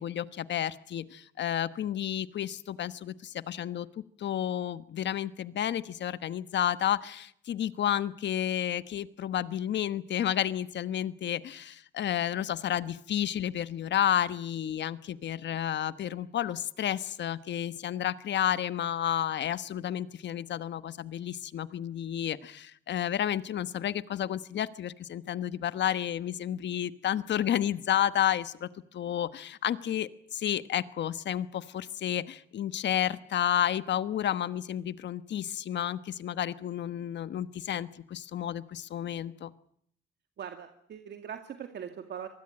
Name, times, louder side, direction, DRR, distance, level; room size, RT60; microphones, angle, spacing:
voice 1, 0.0-39.5, left 10 dB, 65° left, 14 dB, 1.2 m, -31 dB
voice 2, 40.4-42.3, right 8 dB, 60° right, 6 dB, 2.2 m, -41 dB
25.5 x 20.0 x 8.8 m, 0.67 s
cardioid pair, 90°, 20 cm